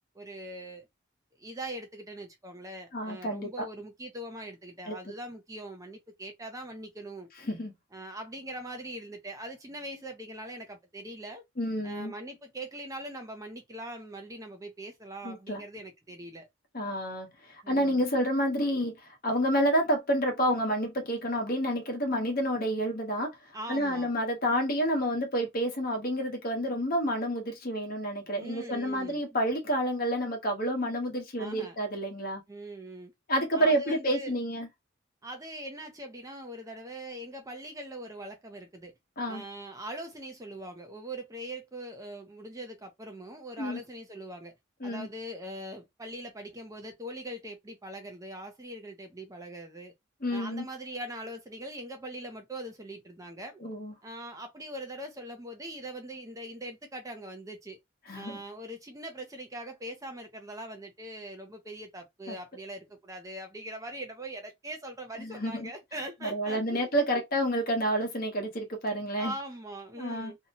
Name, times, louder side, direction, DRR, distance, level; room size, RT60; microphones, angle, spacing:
voice 1, 0.1-0.9 1.4-7.3 7.9-11.4 11.8-16.5 17.6-18.1 23.5-24.1 28.3-29.2 31.4-31.8 32.5-33.1 33.5-34.3 35.2-38.9 39.3-44.5 44.8-49.9 50.3-53.6 54.0-57.8 58.1-67.2 69.2-70.4, right 1 dB, 15° right, 0.5 m, -42 dB
voice 2, 2.9-3.6 4.9-5.0 7.4-7.7 11.6-12.1 15.2-15.6 16.7-32.4 33.3-34.7 39.2-39.4 43.6-43.8 44.8-45.1 50.2-50.7 53.6-53.9 58.1-58.4 62.3-62.4 65.2-65.7 66.2-69.3 70.0-70.3, equal, 45° left, 1.0 m, -29 dB
2.7 x 2.1 x 2.8 m
head